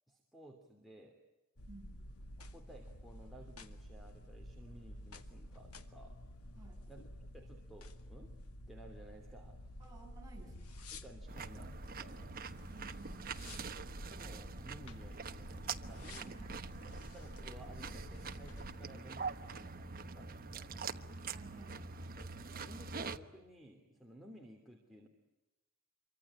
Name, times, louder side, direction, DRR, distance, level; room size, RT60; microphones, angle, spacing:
voice 1, 0.1-1.2 2.5-6.2 6.9-8.4 8.7-9.7 10.9-12.4 14.1-16.4 16.9-20.8 22.2-25.1, right 1 dB, ahead, 0 dB, 3.0 m, -56 dB
sound 1, 1.6-18.8, left 1 dB, 85° left, 1.9 m, -51 dB
voice 2, 1.7-2.0 6.6-6.8 9.8-10.9 12.7-13.7 16.2-16.5 16.8-17.0 21.3-22.1, right 3 dB, 15° right, -1 dB, 7.5 m, -56 dB
sound 2, 11.3-23.2, right 4 dB, 40° right, 1.2 m, -45 dB
27.0 x 24.5 x 8.8 m, 1.0 s
head